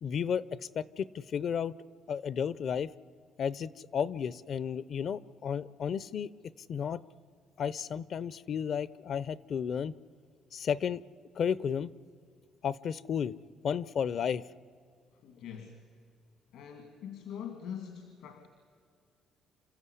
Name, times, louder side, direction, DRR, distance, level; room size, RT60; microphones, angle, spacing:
voice 1, 0.0-1.7 2.1-2.9 3.4-6.3 6.7-7.0 7.6-9.9 10.5-11.0 11.4-11.9 12.6-13.3 13.6-14.4, left 7 dB, 45° left, 20 dB, 0.5 m, -33 dB
voice 2, 15.1-15.9 16.5-18.5, left 8 dB, 80° left, 7 dB, 2.2 m, -43 dB
28.0 x 14.5 x 9.8 m, 2.2 s
cardioid pair, 145°, 0 cm